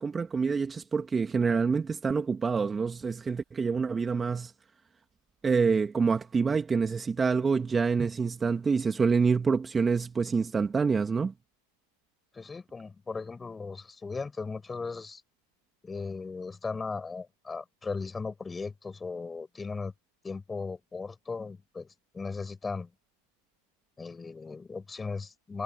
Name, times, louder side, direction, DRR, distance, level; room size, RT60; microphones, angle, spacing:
voice 1, 0.0-4.5 5.4-11.3, right 5 dB, 20° right, 2.7 m, -27 dB
voice 2, 12.3-15.2 15.8-19.9 20.2-21.9 22.1-22.9 24.0-25.6, left 4 dB, 15° left, 6.0 m, -37 dB
hypercardioid pair, 95°, 0 cm